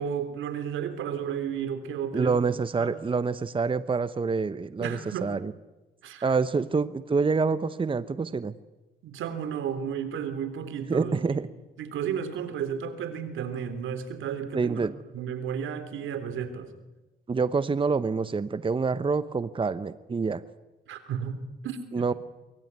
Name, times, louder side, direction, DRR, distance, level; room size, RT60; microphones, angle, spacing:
voice 1, 0.0-2.4 2.8-3.0 4.8-5.4 6.0-6.4 9.0-11.2 11.8-14.8 15.1-16.7 20.9-22.1, right 8 dB, 80° right, 9 dB, 3.5 m, -33 dB
voice 2, 2.1-5.5 6.2-8.5 10.9-11.5 14.5-15.0 17.3-20.4 21.9-22.1, right 4 dB, 25° right, 14 dB, 0.9 m, -27 dB
24.0 x 23.5 x 9.6 m, 1.0 s
cardioid pair, 90°, 20 cm